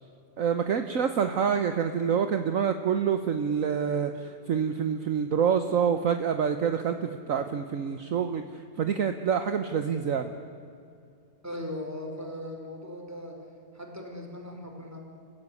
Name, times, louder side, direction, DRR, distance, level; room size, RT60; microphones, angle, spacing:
voice 1, 0.4-10.3, right 7 dB, 55° right, 8 dB, 1.3 m, -27 dB
voice 2, 11.4-13.4 13.7-15.0, left 1 dB, 10° right, 1 dB, 4.5 m, -38 dB
29.0 x 15.5 x 9.7 m, 2.5 s
omnidirectional pair, 1.7 m